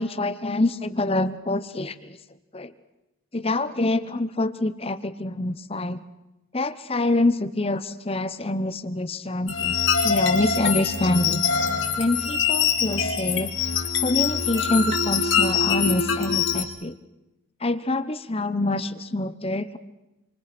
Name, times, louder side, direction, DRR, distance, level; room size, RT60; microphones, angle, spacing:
voice 1, 0.0-2.2 2.5-2.7 3.3-6.0 6.5-11.4 12.0-13.5 14.0-17.0 17.6-19.8, left 2 dB, 30° left, 13 dB, 0.9 m, -26 dB
sound 1, 9.5-16.6, left 6 dB, 65° left, 3.9 m, -24 dB
28.0 x 25.0 x 6.1 m, 1.0 s
head